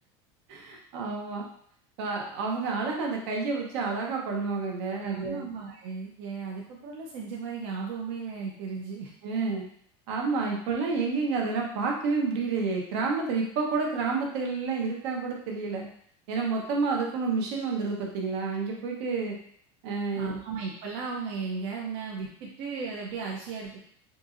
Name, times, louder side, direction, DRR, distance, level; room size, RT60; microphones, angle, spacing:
voice 1, 0.5-1.5 2.0-5.4 9.2-9.6 10.1-15.9 16.3-19.4 19.8-20.3, right 4 dB, 80° right, 0 dB, 0.9 m, -29 dB
voice 2, 4.9-9.1 20.1-23.8, right 5 dB, 60° right, -2 dB, 0.6 m, -36 dB
3.8 x 2.6 x 2.5 m, 0.62 s
cardioid pair, 155°, 14 cm